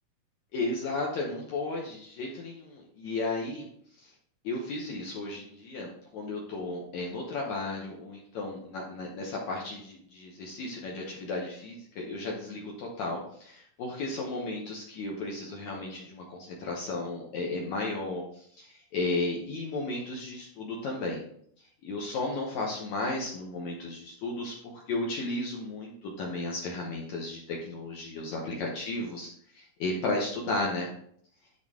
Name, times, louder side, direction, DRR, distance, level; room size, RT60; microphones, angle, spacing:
voice 1, 0.5-3.7 4.0-4.1 4.4-21.2 21.8-30.9, left 2 dB, 70° left, -2 dB, 1.9 m, -34 dB
10.5 x 4.3 x 3.6 m, 0.67 s
omnidirectional pair, 4.3 m